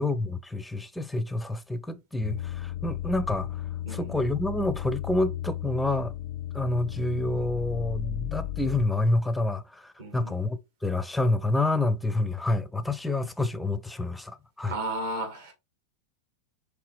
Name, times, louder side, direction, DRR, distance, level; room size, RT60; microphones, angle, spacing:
voice 1, 0.0-3.6 3.9-6.1 6.5-14.7, left 2 dB, 5° left, 0.5 m, -28 dB
sound 1, 2.2-8.9, left 13 dB, 55° left, 0.3 m, -34 dB
voice 2, 10.0-10.3 14.7-15.5, right 2 dB, 60° right, 1.9 m, -34 dB
4.8 x 3.3 x 3.2 m
figure-of-eight pair, 90°, 0 cm